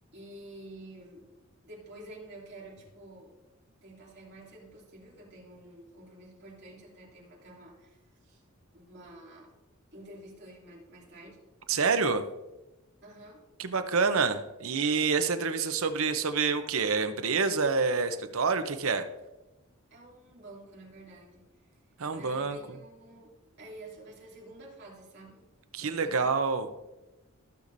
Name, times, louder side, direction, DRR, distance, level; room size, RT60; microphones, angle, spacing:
voice 1, 0.1-1.3 1.6-3.4 3.8-8.4 8.7-9.5 9.9-11.4 13.0-13.5 19.9-21.4 22.1-25.4 25.8-26.3, right 1 dB, 50° right, -4 dB, 2.6 m, -49 dB
voice 2, 11.7-12.2 13.6-19.1 22.0-22.6 25.7-26.7, right 4 dB, 70° right, 9 dB, 0.7 m, -27 dB
14.5 x 6.7 x 2.6 m, 1.0 s
head